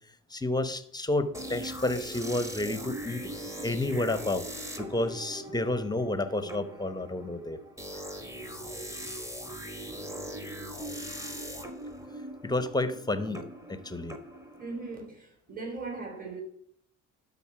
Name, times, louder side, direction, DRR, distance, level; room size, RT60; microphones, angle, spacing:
voice 1, 0.3-3.3 3.6-4.5 4.8-7.6 7.9-8.0 12.4-14.2, left 2 dB, 10° left, 0.9 m, -30 dB
sound 1, 1.3-15.1, equal, 10° right, 1.3 m, -41 dB
voice 2, 14.6-16.4, right 3 dB, 25° right, 3.2 m, -38 dB
12.0 x 4.1 x 5.7 m
supercardioid pair, 90°, 35 cm